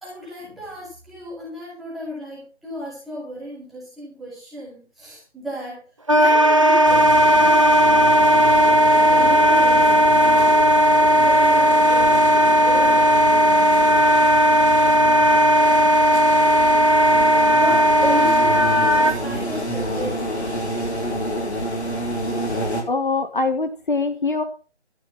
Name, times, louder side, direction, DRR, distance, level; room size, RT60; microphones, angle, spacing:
voice 1, 0.0-5.8 6.1-7.6 8.8-9.9 11.1-12.2 12.5-13.4 17.5-20.7, equal, ahead, -9 dB, 2.3 m, -33 dB
Wind instrument woodwind instrument, 6.1-19.1, equal, 30° right, 0.8 m, -15 dB
sound 1, 6.8-22.8, equal, 70° left, 5.6 m, -29 dB
voice 2, 22.9-24.4, left 3 dB, 45° left, 8 dB, 1.5 m, -23 dB
12.5 x 9.1 x 5.6 m, 0.36 s
figure-of-eight pair, 165°, 34 cm